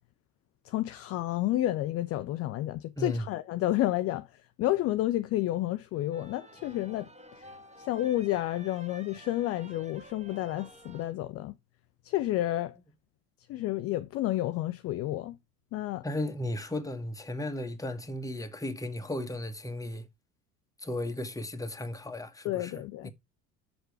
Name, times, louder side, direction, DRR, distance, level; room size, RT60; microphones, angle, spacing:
voice 1, 0.7-4.3 4.6-7.1 7.4-7.5 7.8-11.5 12.0-12.8 13.5-15.3 15.7-16.0 22.4-23.1, left 15 dB, 35° left, 0.4 m, -30 dB
sound 1, 6.1-11.1, right 1 dB, 15° right, 1.5 m, -51 dB
voice 2, 16.0-20.1 20.8-22.7 23.0-23.1, left 1 dB, 5° left, 1.2 m, -35 dB
7.7 x 6.6 x 4.5 m
figure-of-eight pair, 60°, 46 cm